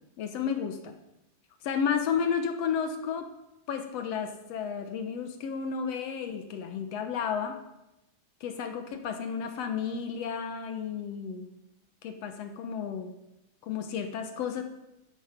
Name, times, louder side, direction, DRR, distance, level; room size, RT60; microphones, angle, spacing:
voice 1, 0.2-0.9 1.6-3.3 3.7-7.6 8.4-11.5 12.0-13.1 13.6-14.6, left 7 dB, 65° left, 7 dB, 1.9 m, -32 dB
13.0 x 10.0 x 5.3 m, 0.92 s
omnidirectional pair, 3.4 m